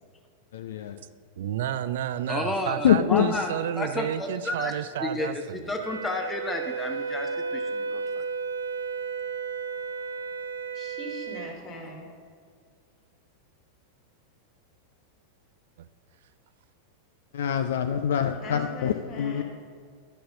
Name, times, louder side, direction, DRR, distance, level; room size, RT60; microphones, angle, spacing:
voice 1, 0.5-1.0 2.8-3.3 17.3-19.4, left 9 dB, 60° left, 8 dB, 0.4 m, -24 dB
voice 2, 1.4-5.8 15.8-15.9, right 10 dB, 55° right, 14 dB, 0.3 m, -31 dB
voice 3, 2.3-4.7 5.0-5.3 5.7-8.2, left 2 dB, 15° left, 4 dB, 0.9 m, -31 dB
Wind instrument woodwind instrument, 5.8-11.5, right 5 dB, 85° right, 0.9 m, -33 dB
voice 4, 10.7-12.1 18.4-19.4, left 1 dB, 40° left, 0 dB, 2.3 m, -40 dB
10.0 x 5.6 x 6.5 m, 2.1 s
figure-of-eight pair, 90°, 0 cm